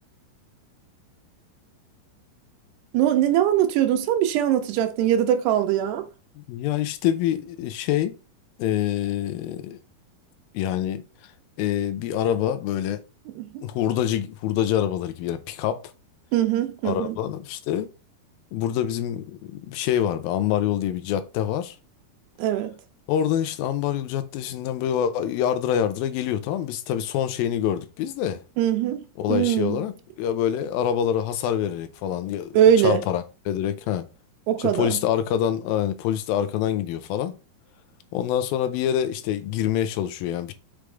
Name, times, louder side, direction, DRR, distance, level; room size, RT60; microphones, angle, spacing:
voice 1, 2.9-6.1 13.4-13.6 16.3-17.2 22.4-22.8 28.6-29.0 29.3-29.8 32.5-33.0 34.5-35.0, right 10 dB, 85° right, 2.9 m, -21 dB
voice 2, 6.4-8.2 8.6-9.8 10.5-11.0 11.6-13.0 13.6-15.9 16.8-17.9 18.5-21.8 23.1-28.4 29.2-32.6 32.8-34.1 34.6-37.4 38.1-40.5, left 10 dB, 75° left, 2.4 m, -26 dB
6.3 x 5.1 x 3.3 m
omnidirectional pair, 4.6 m